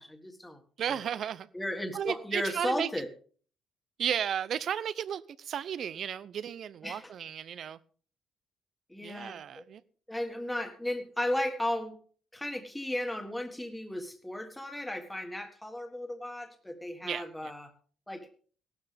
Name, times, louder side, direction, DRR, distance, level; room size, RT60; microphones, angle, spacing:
voice 1, 0.0-0.6 0.9-1.0 1.5-3.1 6.8-7.1 8.9-9.6 10.1-12.0 12.3-17.7 18.1-18.3, left 1 dB, 5° left, 1.8 m, -35 dB
voice 2, 0.8-1.5 1.9-2.9 4.0-7.8 9.0-9.8 17.0-17.5, right 9 dB, 45° right, 0.7 m, -34 dB
17.0 x 12.5 x 3.5 m
cardioid pair, 160°, 0 cm